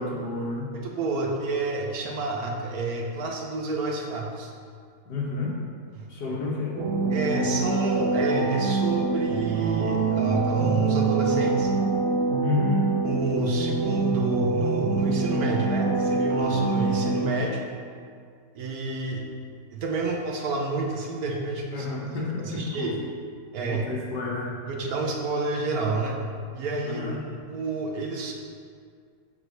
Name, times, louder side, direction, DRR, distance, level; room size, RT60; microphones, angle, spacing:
voice 1, 0.0-0.8 5.1-5.6 6.1-6.8 12.4-12.9 21.7-22.9 23.7-24.5 26.8-27.2, left 3 dB, 75° left, -3 dB, 1.9 m, -30 dB
voice 2, 0.7-4.5 6.0-6.4 7.1-11.7 13.0-17.6 18.5-19.2 19.7-21.9 22.4-22.9 23.5-23.9 24.7-26.2 26.5-28.3, right 3 dB, 65° right, 1 dB, 1.3 m, -29 dB
sound 1, 6.8-17.2, right 3 dB, 85° right, 1.9 m, -25 dB
7.1 x 4.0 x 6.5 m, 2.1 s
omnidirectional pair, 1.8 m